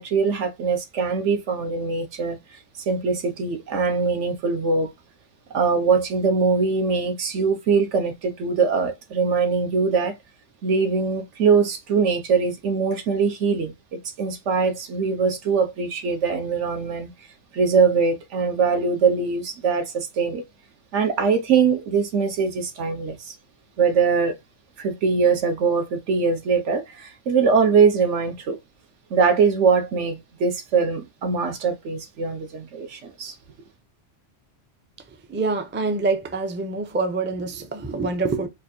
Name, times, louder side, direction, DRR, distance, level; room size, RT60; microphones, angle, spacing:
voice 1, 0.0-2.4 2.8-4.9 5.5-10.1 10.6-17.1 17.5-20.4 20.9-23.3 23.8-24.4 24.8-28.6 29.1-33.3, right 5 dB, 80° right, 1.2 m, -22 dB
voice 2, 35.3-38.5, right 3 dB, 20° right, 0.3 m, -25 dB
4.3 x 2.5 x 2.7 m
omnidirectional pair, 1.2 m